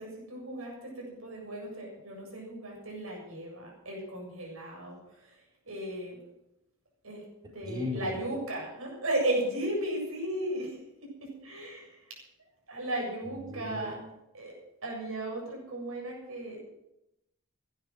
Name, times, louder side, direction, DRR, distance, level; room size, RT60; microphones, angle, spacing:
voice 1, 0.0-5.4 5.6-6.2 7.0-7.2 7.5-12.2 12.7-14.0 14.3-14.5 14.8-16.6, right 1 dB, 75° right, -1 dB, 7.6 m, -35 dB
voice 2, 7.6-8.1 13.2-14.0, left 3 dB, 20° right, -2 dB, 4.3 m, -37 dB
17.0 x 12.0 x 6.4 m, 0.86 s
head